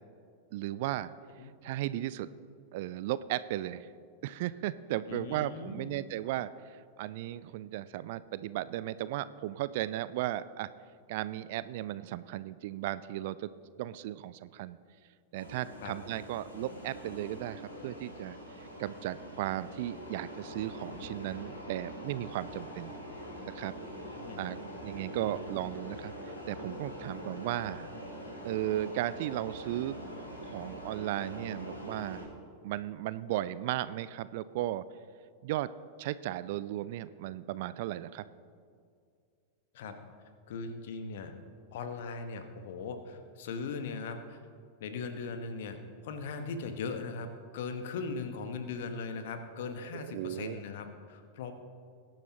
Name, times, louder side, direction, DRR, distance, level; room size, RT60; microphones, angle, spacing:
voice 1, 0.5-1.1 1.6-2.3 2.7-3.9 4.2-10.7 11.1-13.5 13.8-14.8 15.3-18.4 18.8-23.0 23.6-23.7 24.4-26.1 26.5-27.9 28.4-30.0 30.4-32.3 32.6-34.8 35.4-35.7 36.0-38.3 49.9-50.6, right 14 dB, 50° right, 17 dB, 0.4 m, -35 dB
voice 2, 5.1-5.9 15.8-15.9 24.2-24.4 25.3-25.5 39.7-39.9 40.5-41.3 41.7-44.4 44.8-45.8 46.0-47.3 47.5-51.5, left 4 dB, 55° left, 7 dB, 1.2 m, -39 dB
sound 1, 15.3-32.2, equal, 80° left, 3.5 m, -44 dB
21.5 x 10.5 x 2.9 m, 2.2 s
figure-of-eight pair, 90°, 0 cm